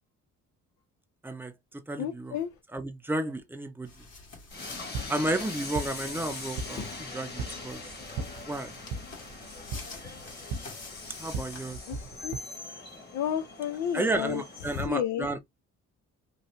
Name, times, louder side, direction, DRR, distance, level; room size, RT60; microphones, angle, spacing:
voice 1, 1.2-2.4 2.7-3.9 5.1-7.8 8.4-8.7 11.2-11.8 13.9-15.4, right 2 dB, 5° right, 0.6 m, -32 dB
voice 2, 2.0-2.5 11.9-12.4 13.1-14.4 14.8-15.3, left 9 dB, 80° left, 0.6 m, -31 dB
sound 1, 3.8-11.7, left 4 dB, 55° left, 1.6 m, -47 dB
Train, 4.5-14.9, left 3 dB, 35° left, 1.5 m, -42 dB
sound 2, 4.6-12.4, right 3 dB, 75° right, 0.7 m, -39 dB
3.1 x 2.3 x 2.8 m
cardioid pair, 90°, 30 cm